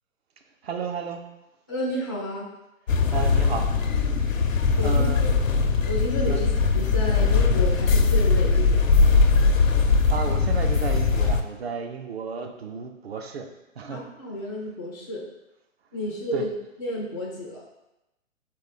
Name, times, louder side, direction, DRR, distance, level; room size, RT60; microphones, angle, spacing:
voice 1, 0.6-1.2 3.1-3.7 4.8-5.3 6.3-6.5 10.1-13.5 13.8-14.0 16.3-16.5, right 5 dB, 50° right, 5 dB, 0.6 m, -32 dB
voice 2, 1.7-2.5 4.8-5.3 5.9-8.9 13.9-15.3 15.9-16.5 16.8-17.6, left 1 dB, 15° left, -4 dB, 0.3 m, -31 dB
sound 1, 2.9-11.4, left 4 dB, 80° left, 0.6 m, -20 dB
4.2 x 2.8 x 4.1 m, 0.94 s
figure-of-eight pair, 125°, 39 cm